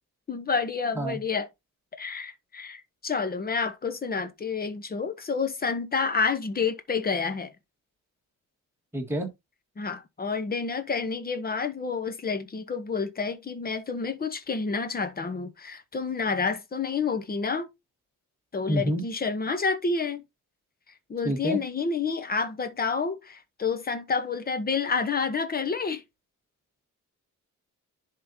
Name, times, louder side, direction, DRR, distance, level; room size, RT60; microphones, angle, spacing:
voice 1, 0.3-1.5 2.0-7.5 9.8-17.7 18.5-20.2 21.1-26.0, left 5 dB, 30° left, 1.0 m, -29 dB
voice 2, 8.9-9.3 18.7-19.0 21.2-21.6, right 1 dB, 10° right, 1.6 m, -27 dB
11.0 x 3.8 x 2.7 m
wide cardioid pair, 155°, 32 cm